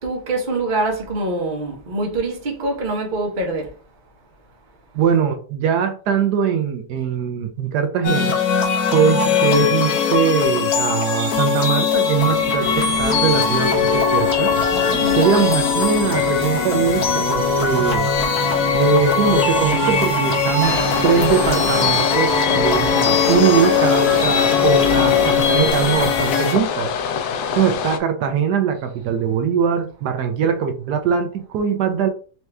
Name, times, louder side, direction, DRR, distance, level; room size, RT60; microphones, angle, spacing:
voice 1, 0.0-3.7 14.9-15.3, right 2 dB, 35° right, 1.0 m, -24 dB
voice 2, 4.9-8.3 8.9-14.5 15.2-18.1 18.7-26.9 27.6-32.1, right 6 dB, 80° right, 1.2 m, -21 dB
sound 1, 8.0-26.5, left 6 dB, 65° left, 1.5 m, -20 dB
sound 2, 12.1-26.3, right 2 dB, 50° right, 0.4 m, -31 dB
sound 3, 20.6-28.0, left 6 dB, 85° left, 1.2 m, -25 dB
4.3 x 3.0 x 3.4 m
omnidirectional pair, 1.7 m